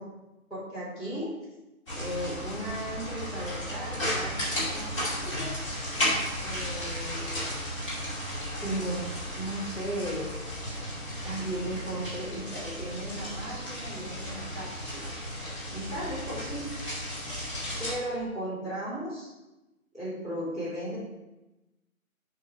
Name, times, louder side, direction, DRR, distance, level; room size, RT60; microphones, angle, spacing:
voice 1, 0.5-1.3 1.9-5.5 6.4-7.5 8.6-9.1 9.3-10.3 11.2-15.1 15.7-16.7 17.8-19.3 19.9-21.0, right 1 dB, ahead, -19 dB, 2.3 m, -36 dB
sound 1, 1.9-17.9, equal, 20° left, 2.2 m, -34 dB
7.6 x 4.7 x 5.8 m, 1.0 s
figure-of-eight pair, 160°, 42 cm